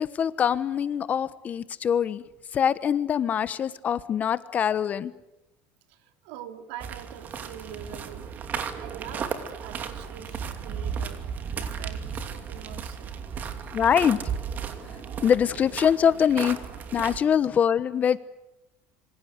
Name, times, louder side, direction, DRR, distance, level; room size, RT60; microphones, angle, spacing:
voice 1, 0.0-2.2 2.5-5.1 13.7-14.2 15.2-16.6 16.9-18.2, left 8 dB, 30° left, 15 dB, 1.1 m, -23 dB
voice 2, 5.9-8.3 8.8-11.2 11.6-13.1 13.6-13.8, right 10 dB, 80° right, 7 dB, 3.2 m, -44 dB
sound 1, 6.8-17.2, right 7 dB, 35° right, 2.7 m, -35 dB
26.5 x 24.5 x 8.1 m, 0.91 s
cardioid pair, 145°, 5 cm